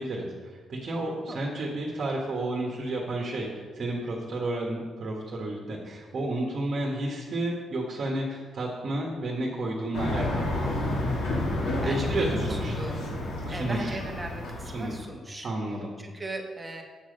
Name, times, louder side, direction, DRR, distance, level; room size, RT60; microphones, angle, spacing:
voice 1, 0.0-3.5 3.7-10.6 11.8-12.7 13.4-14.0 14.6-15.0 15.4-15.9, right 1 dB, 40° right, -2 dB, 1.4 m, -31 dB
sound 1, 9.9-15.0, left 1 dB, 70° left, 2.8 m, -30 dB
voice 2, 11.8-13.0 13.5-15.5 16.0-16.8, right 2 dB, 15° right, 2 dB, 1.1 m, -38 dB
7.6 x 7.3 x 5.2 m, 1.5 s
cardioid pair, 150°, 0 cm